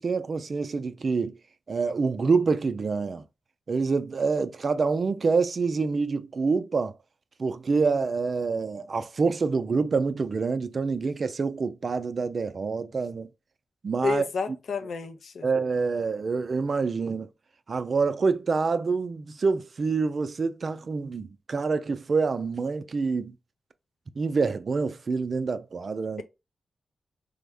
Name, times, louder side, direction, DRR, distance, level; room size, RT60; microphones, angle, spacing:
voice 1, 0.0-1.3 1.7-3.2 3.7-6.9 7.4-13.3 13.8-14.2 15.4-17.3 17.7-23.3 24.2-26.2, right 4 dB, 60° right, 0.4 m, -26 dB
voice 2, 14.0-15.5, left 5 dB, 80° left, 0.5 m, -30 dB
3.4 x 2.1 x 3.4 m
supercardioid pair, 45°, 0 cm